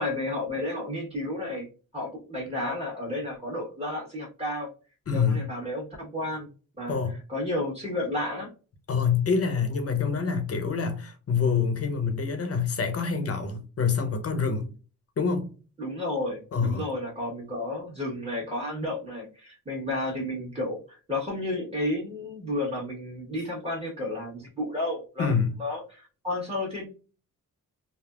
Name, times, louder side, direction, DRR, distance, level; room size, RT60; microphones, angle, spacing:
voice 1, 0.0-1.7 1.9-4.7 5.1-6.5 6.8-7.0 7.3-8.5 15.8-26.9, left 1 dB, 20° right, 1.2 m, -32 dB
voice 2, 5.1-5.5 6.9-7.1 8.9-14.7 15.2-15.5 16.5-16.9 25.2-25.5, left 5 dB, 45° left, 0.8 m, -26 dB
3.4 x 2.0 x 2.4 m
cardioid pair, 80°, 33 cm